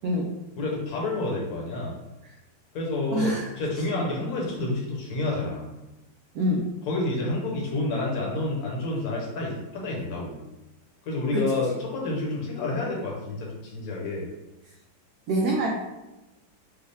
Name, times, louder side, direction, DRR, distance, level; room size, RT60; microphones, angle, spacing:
voice 1, 0.6-1.9 2.7-5.7 6.9-10.4 11.1-14.3, left 2 dB, 55° left, -2 dB, 1.4 m, -29 dB
voice 2, 3.1-3.5 6.3-6.6 11.3-11.4 15.3-15.7, right 1 dB, 70° right, -2 dB, 0.9 m, -24 dB
5.3 x 2.3 x 3.3 m, 1.0 s
omnidirectional pair, 2.2 m